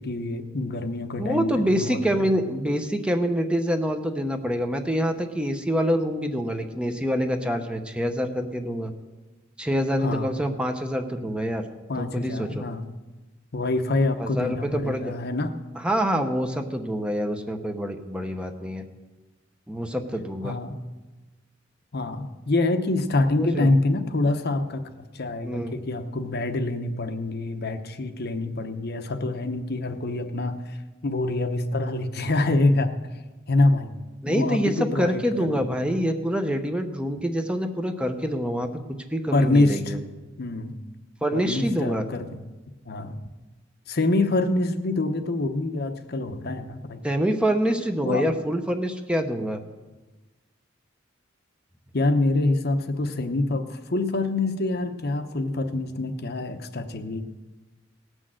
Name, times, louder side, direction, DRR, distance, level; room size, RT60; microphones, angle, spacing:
voice 1, 0.0-2.0 10.0-10.3 11.9-12.9 13.5-15.5 20.4-20.8 21.9-30.8 31.0-33.0 33.5-33.9 34.3-35.6 39.3-40.0 40.4-40.8 41.3-42.4 42.9-43.2 43.9-47.0 48.0-48.3 51.9-57.2, left 2 dB, 55° left, 7 dB, 0.9 m, -26 dB
voice 2, 1.2-8.9 9.6-11.6 12.0-12.6 14.2-15.1 15.8-18.8 19.7-20.5 23.4-23.7 25.4-25.7 34.2-40.0 41.2-42.0 47.0-49.6, equal, 5° right, 6 dB, 0.8 m, -26 dB
17.5 x 6.3 x 7.6 m, 1.2 s
head